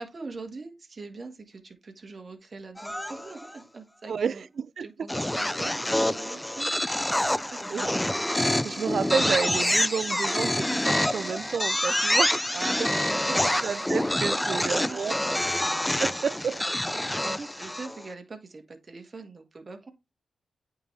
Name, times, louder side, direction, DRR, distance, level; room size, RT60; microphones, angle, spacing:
voice 1, 0.0-4.5 4.8-6.7 7.0-7.6 12.5-13.6 14.4-15.5 15.9-16.0 17.0-19.9, right 3 dB, 45° right, 1.6 m, -42 dB
sound 1, 2.8-3.5 5.1-18.1, left 1 dB, 10° left, 0.4 m, -27 dB
voice 2, 4.1-5.1 7.7-8.0 8.2-12.4 13.2-15.2 16.0-16.6, right 6 dB, 70° right, 0.3 m, -31 dB
8.7 x 3.9 x 3.3 m
cardioid pair, 55°, 0 cm